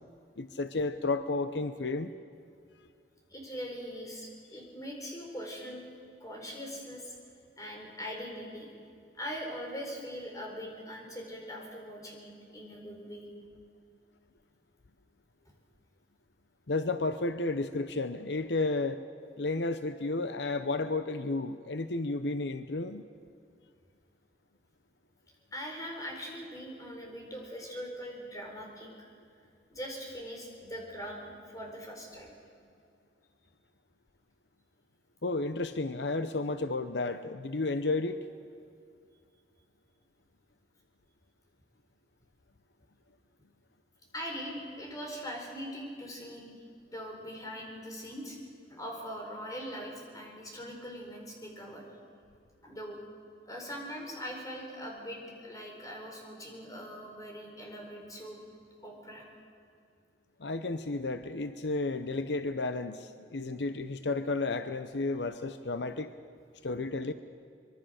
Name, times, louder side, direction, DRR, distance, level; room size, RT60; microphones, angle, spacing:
voice 1, 0.4-2.1 16.7-19.0 19.4-23.0 35.2-38.2 60.4-66.1 66.6-67.1, left 3 dB, 80° left, 11 dB, 0.8 m, -32 dB
voice 2, 3.3-5.8 6.2-7.2 7.6-8.7 9.1-13.3 25.5-29.1 29.7-32.3 44.1-46.5 46.9-48.4 48.7-51.9 52.6-53.0 53.5-58.4 58.8-59.2, equal, 20° left, 0 dB, 4.5 m, -41 dB
24.5 x 23.0 x 6.5 m, 2.3 s
head